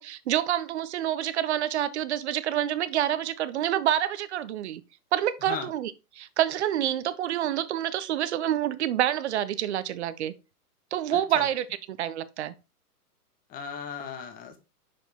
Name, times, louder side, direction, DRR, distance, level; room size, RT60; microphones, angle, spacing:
voice 1, 0.0-4.8 5.1-10.3 10.9-12.5, right 11 dB, 45° right, 0.6 m, -27 dB
voice 2, 11.1-11.4 13.5-14.6, left 7 dB, 20° left, 1.0 m, -37 dB
6.3 x 4.9 x 3.5 m
figure-of-eight pair, 115°, 47 cm